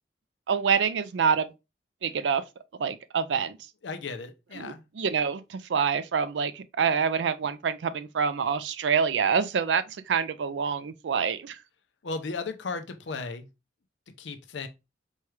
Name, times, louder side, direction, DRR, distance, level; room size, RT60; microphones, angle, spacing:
voice 1, 0.5-1.5 2.0-2.4 2.8-3.6 4.6-11.6, right 6 dB, 80° right, 0.4 m, -26 dB
voice 2, 3.8-4.8 12.0-13.5 14.2-14.7, left 4 dB, 85° left, 0.6 m, -35 dB
4.4 x 2.3 x 3.1 m
head